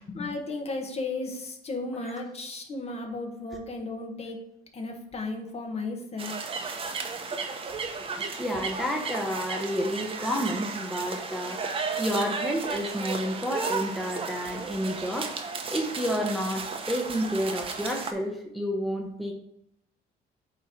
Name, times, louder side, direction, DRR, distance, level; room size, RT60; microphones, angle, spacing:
voice 1, 0.1-4.4 4.7-6.3, left 3 dB, 40° left, 3 dB, 1.3 m, -34 dB
sound 1, 6.2-18.1, right 4 dB, 35° right, 0.8 m, -34 dB
voice 2, 8.2-11.6 12.0-15.3 15.7-19.3, equal, ahead, 0 dB, 0.8 m, -30 dB
8.5 x 3.1 x 4.2 m, 0.77 s
cardioid pair, 110°, 17 cm